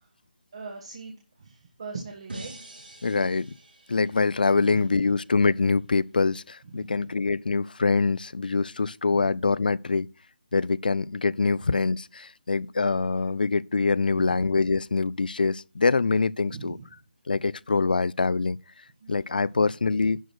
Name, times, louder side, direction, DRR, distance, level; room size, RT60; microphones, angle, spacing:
voice 1, 0.5-2.5 4.5-5.0 6.7-7.0 9.1-9.3 14.2-14.4 16.5-16.8 19.0-19.2, right 4 dB, 35° right, 1.5 m, -40 dB
sound 1, 2.3-5.4, right 2 dB, 80° right, 5.2 m, -45 dB
voice 2, 3.0-3.6 3.9-10.1 10.5-16.8 17.3-18.6 19.1-20.2, left 4 dB, 70° left, 0.4 m, -24 dB
11.0 x 4.7 x 6.2 m
figure-of-eight pair, 170°, 5 cm